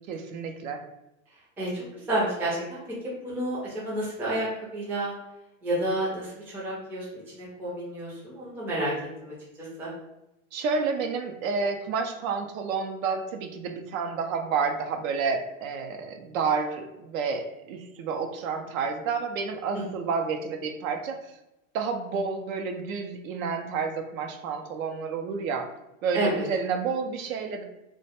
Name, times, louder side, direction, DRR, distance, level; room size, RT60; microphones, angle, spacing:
voice 1, 0.1-0.8 10.5-21.3 21.7-25.7 26.0-27.6, right 5 dB, 75° right, 5 dB, 0.5 m, -30 dB
voice 2, 1.6-5.2 5.6-7.1 7.3-8.9 9.2-9.9 26.1-26.5, right 1 dB, 5° right, -7 dB, 0.4 m, -30 dB
2.2 x 2.1 x 2.8 m, 0.91 s
supercardioid pair, 140°, 41 cm